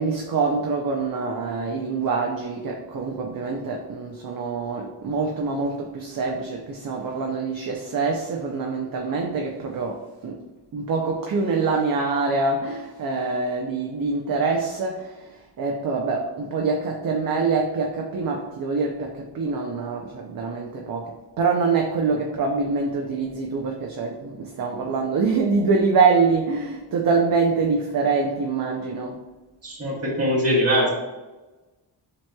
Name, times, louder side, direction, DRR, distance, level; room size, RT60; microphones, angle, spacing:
voice 1, 0.0-10.4 10.7-29.2, right 4 dB, 50° right, 1 dB, 0.6 m, -25 dB
voice 2, 29.6-30.9, equal, 35° right, -5 dB, 1.5 m, -22 dB
7.3 x 3.0 x 2.2 m, 1.1 s
wide cardioid pair, 135°, 43 cm